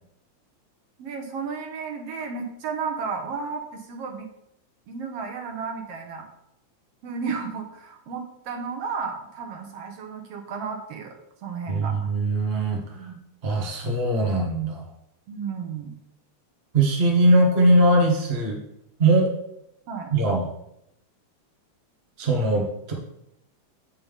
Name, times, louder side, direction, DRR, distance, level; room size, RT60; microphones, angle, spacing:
voice 1, 1.0-4.3 4.9-6.3 7.0-11.1 11.4-12.1 12.9-13.2 15.3-16.0 19.9-20.1, right 5 dB, 65° right, 4 dB, 1.7 m, -33 dB
voice 2, 11.7-13.1 13.4-14.8 16.7-18.6 19.0-19.3 20.1-20.5 22.2-22.9, right 1 dB, 50° right, 0 dB, 0.7 m, -21 dB
8.6 x 5.6 x 3.5 m, 0.78 s
omnidirectional pair, 3.4 m